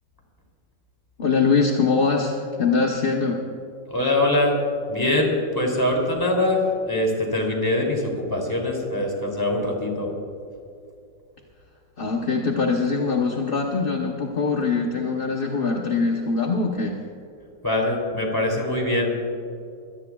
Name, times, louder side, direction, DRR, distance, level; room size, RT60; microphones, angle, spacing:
voice 1, 1.2-3.4 12.0-17.0, left 4 dB, 40° left, 0 dB, 0.9 m, -23 dB
voice 2, 3.9-4.6 4.9-10.1 17.6-19.1, left 1 dB, 10° left, -1 dB, 2.9 m, -23 dB
24.5 x 17.5 x 2.4 m, 2.5 s
omnidirectional pair, 2.0 m